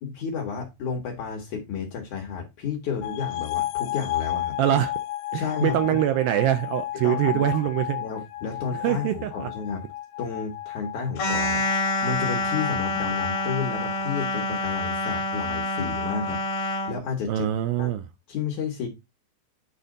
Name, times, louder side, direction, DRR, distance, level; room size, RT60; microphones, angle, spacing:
voice 1, 0.0-4.6 5.3-6.0 7.0-7.7 8.0-9.8 10.2-17.5 17.8-17.9 18.3-18.9, left 6 dB, 65° left, 2.1 m, -32 dB
sound 1, 3.0-14.1, left 13 dB, 85° left, 2.7 m, -33 dB
voice 2, 4.6-4.9 5.3-8.0 8.8-9.5 17.3-18.0, right 12 dB, 85° right, 2.1 m, -24 dB
sound 2, 11.2-17.0, left 2 dB, 45° left, 2.5 m, -27 dB
9.6 x 4.2 x 3.8 m
omnidirectional pair, 5.0 m